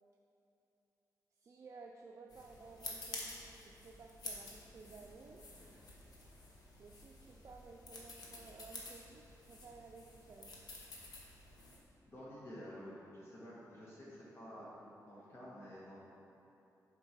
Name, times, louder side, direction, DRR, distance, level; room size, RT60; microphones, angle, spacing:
voice 1, 1.4-5.5 6.8-10.6, right 4 dB, 45° right, 1 dB, 0.5 m, -55 dB
sound 1, 2.3-11.8, left 2 dB, 75° left, 1.3 m, -51 dB
voice 2, 12.0-16.0, equal, 40° left, -8 dB, 1.5 m, -51 dB
7.9 x 4.5 x 5.8 m, 2.9 s
cardioid pair, 100°, 7 cm